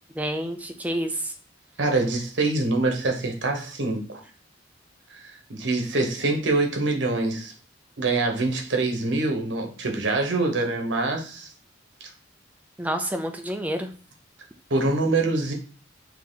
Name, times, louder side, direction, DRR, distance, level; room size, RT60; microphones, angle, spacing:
voice 1, 0.1-1.3 12.8-13.9, right 1 dB, 10° right, 5 dB, 0.4 m, -28 dB
voice 2, 1.8-4.2 5.2-7.5 8.0-11.5 12.0-12.1 14.7-15.5, right 2 dB, 75° right, 3 dB, 1.1 m, -25 dB
4.7 x 2.9 x 3.8 m, 0.39 s
head